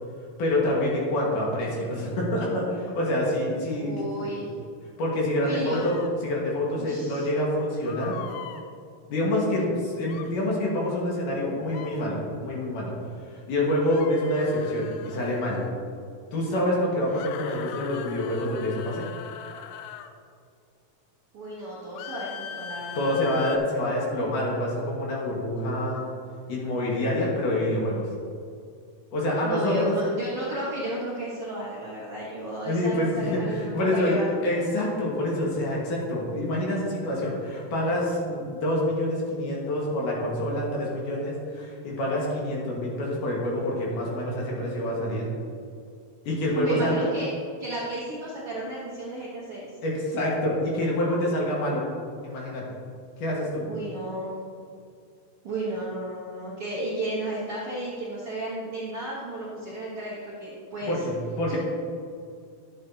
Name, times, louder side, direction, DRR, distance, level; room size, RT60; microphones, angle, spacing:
voice 1, 0.4-4.5 5.0-6.0 6.2-8.2 9.1-12.9 13.3-15.6 16.3-19.0 23.0-26.0 26.5-28.0 29.1-29.9 32.7-45.3 46.3-46.9 49.8-51.8 52.2-52.6 53.2-53.6 60.9-61.6, left 1 dB, 65° left, -4 dB, 2.9 m, -27 dB
voice 2, 3.8-4.5 5.4-5.9 6.8-7.3 21.3-23.3 29.4-34.3 46.5-49.7 53.6-54.3 55.4-61.0 61.5-61.6, right 1 dB, 65° right, -6 dB, 1.5 m, -33 dB
sound 1, 5.7-6.1 7.9-8.6 10.0-10.3 11.6-12.0 13.8-15.7 17.0-20.1 22.0-23.6, left 9 dB, 85° left, 1.8 m, -41 dB
11.0 x 8.6 x 2.8 m, 2.3 s
omnidirectional pair, 4.3 m